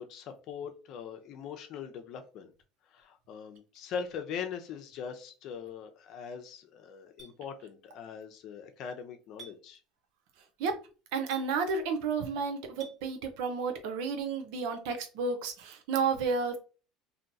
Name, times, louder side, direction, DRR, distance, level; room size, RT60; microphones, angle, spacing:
voice 1, 0.0-2.5 2.9-9.8, left 7 dB, 55° left, 6 dB, 0.7 m, -41 dB
Chink clink, 7.2-7.3 9.4-9.5 11.3-11.5 12.8-13.0, right 5 dB, 40° right, 1.5 m, -46 dB
voice 2, 11.1-16.6, right 5 dB, 75° right, 6 dB, 0.7 m, -31 dB
2.8 x 2.2 x 4.0 m, 0.35 s
supercardioid pair, 115°, 0 cm